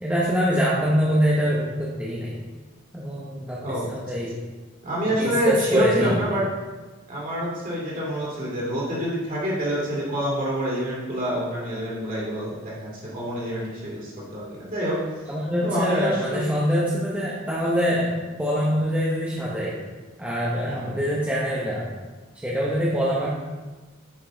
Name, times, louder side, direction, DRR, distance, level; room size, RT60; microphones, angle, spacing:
voice 1, 0.0-2.4 2.9-4.4 5.2-6.2 15.3-18.1 18.4-19.7 20.2-21.9 22.4-23.3, equal, 5° right, -7 dB, 1.0 m, -24 dB
voice 2, 4.8-6.5 7.1-15.0 15.6-16.5 20.7-20.9, equal, 40° right, -6 dB, 2.6 m, -27 dB
8.9 x 5.4 x 3.9 m, 1.3 s
head